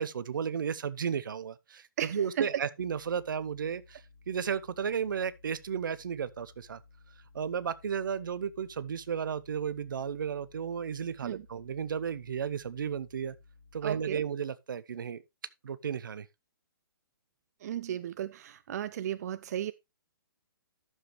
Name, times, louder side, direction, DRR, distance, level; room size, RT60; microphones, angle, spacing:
voice 1, 0.0-6.8 7.3-13.4 13.7-15.2 15.6-16.3, right 7 dB, 65° right, 0.8 m, -34 dB
voice 2, 2.0-2.5 11.2-11.4 13.8-14.2 17.6-19.7, right 11 dB, 45° right, 0.4 m, -35 dB
sound 1, 2.8-14.2, left 4 dB, 55° left, 3.1 m, -58 dB
11.0 x 7.3 x 3.1 m
figure-of-eight pair, 130°, 12 cm